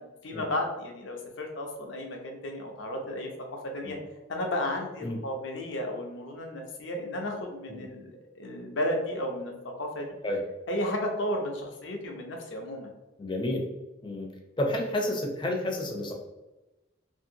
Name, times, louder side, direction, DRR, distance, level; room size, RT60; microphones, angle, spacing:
voice 1, 0.2-3.3 3.7-4.0 4.3-8.1 8.4-9.5 9.8-10.1 10.7-12.9, left 1 dB, 80° left, 1 dB, 0.6 m, -33 dB
voice 2, 13.2-13.6 14.0-14.3 14.6-16.1, left 1 dB, 25° left, 1 dB, 0.4 m, -30 dB
2.7 x 2.7 x 2.7 m, 1.1 s
head